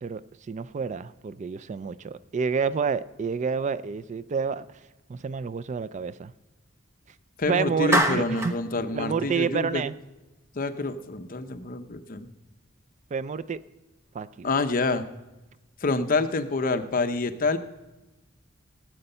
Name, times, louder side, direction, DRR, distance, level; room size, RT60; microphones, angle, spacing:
voice 1, 0.5-4.7 5.1-6.3 7.5-8.5 8.9-9.9 13.1-13.6 14.1-14.5, right 5 dB, 35° right, 16 dB, 0.3 m, -29 dB
voice 2, 7.4-9.8 10.5-12.3 14.4-15.0 15.8-17.6, left 3 dB, 45° left, 9 dB, 0.8 m, -27 dB
Clapping, 7.9-8.6, right 1 dB, 15° right, 0.9 m, -24 dB
17.5 x 7.8 x 5.5 m, 1.1 s
head